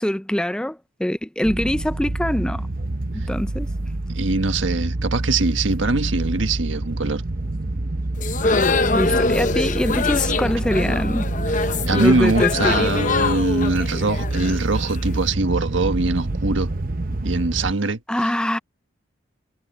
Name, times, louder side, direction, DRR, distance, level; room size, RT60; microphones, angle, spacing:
voice 1, 0.0-2.7 3.1-3.7 8.9-11.3 11.9-12.9 18.1-18.6, left 1 dB, 5° left, 0.4 m, -24 dB
sound 1, 1.4-17.7, right 2 dB, 50° right, 0.8 m, -27 dB
voice 2, 4.1-7.2 11.9-16.7 17.2-18.0, right 3 dB, 90° right, 1.5 m, -22 dB
sound 2, 8.2-15.2, left 3 dB, 40° left, 0.8 m, -23 dB
head